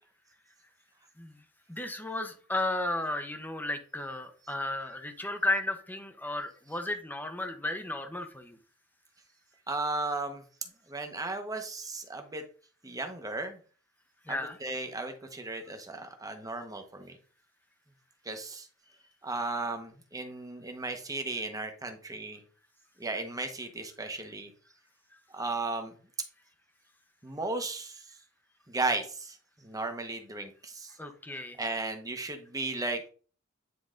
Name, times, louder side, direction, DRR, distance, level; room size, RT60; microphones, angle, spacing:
voice 1, 1.7-8.6 14.3-14.6 31.0-31.6, left 2 dB, 10° left, 8 dB, 0.9 m, -34 dB
voice 2, 9.7-10.4 10.9-12.4 12.8-13.6 14.3-17.2 18.2-18.7 19.2-22.4 23.0-24.5 25.3-25.9 27.2-28.1 28.7-31.0 31.6-33.0, right 3 dB, 15° right, 6 dB, 1.0 m, -35 dB
9.6 x 3.8 x 3.8 m, 0.40 s
head